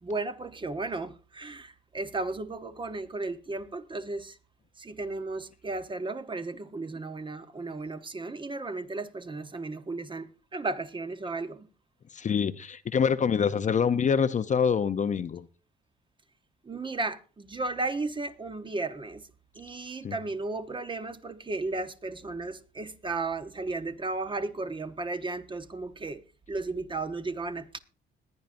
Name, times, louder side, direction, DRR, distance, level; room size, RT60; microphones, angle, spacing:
voice 1, 0.0-4.4 4.8-11.7 16.6-19.3 19.5-26.2 26.5-27.8, right 3 dB, 25° right, 0.9 m, -34 dB
voice 2, 12.1-15.5 20.0-20.2, left 6 dB, 40° left, 0.6 m, -25 dB
21.0 x 9.3 x 2.6 m
cardioid pair, 90°, 20 cm